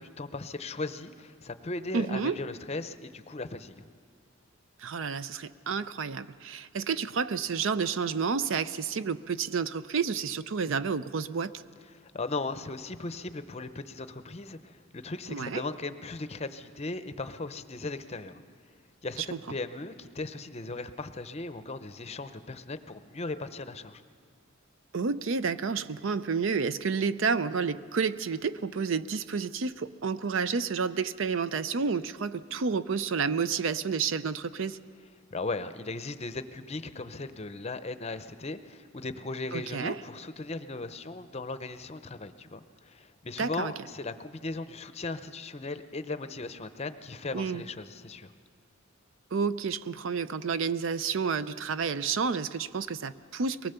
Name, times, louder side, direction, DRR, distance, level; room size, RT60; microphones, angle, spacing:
voice 1, 0.0-3.9 11.9-18.4 19.0-24.0 35.3-48.3, left 3 dB, 30° left, 11 dB, 0.6 m, -37 dB
voice 2, 1.9-2.4 4.8-11.5 15.3-15.6 19.2-19.3 24.9-34.8 39.5-40.0 43.4-43.7 47.3-47.6 49.3-53.7, right 5 dB, 60° right, 14 dB, 0.5 m, -30 dB
23.0 x 19.0 x 6.8 m, 2.1 s
head